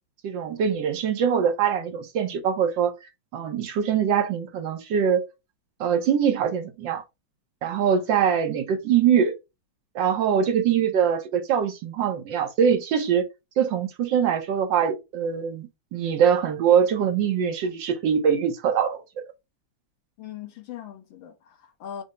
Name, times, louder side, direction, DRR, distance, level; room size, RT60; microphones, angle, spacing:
voice 1, 0.2-2.9 3.3-5.3 5.8-7.0 7.6-9.4 9.9-13.3 13.6-19.0, right 8 dB, 70° right, 1.4 m, -23 dB
voice 2, 20.2-22.0, left 9 dB, 70° left, 1.5 m, -40 dB
5.5 x 2.0 x 4.7 m
omnidirectional pair, 2.3 m